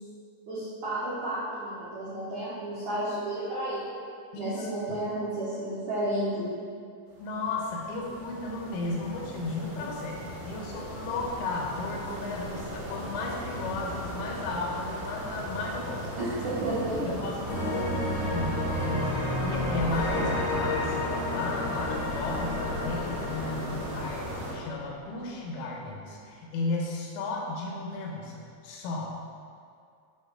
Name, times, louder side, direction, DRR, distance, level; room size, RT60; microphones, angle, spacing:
voice 1, 0.5-3.8 4.4-6.5 16.2-17.2, right 1 dB, 90° right, -10 dB, 1.7 m, -32 dB
voice 2, 4.3-5.0 7.2-16.3 17.1-29.2, left 2 dB, 85° left, -1 dB, 3.5 m, -34 dB
sound 1, 7.1-24.5, equal, 60° right, 2.0 m, -38 dB
sound 2, 17.5-25.1, left 1 dB, 55° left, 2.0 m, -32 dB
9.9 x 3.8 x 3.7 m, 2.3 s
omnidirectional pair, 5.6 m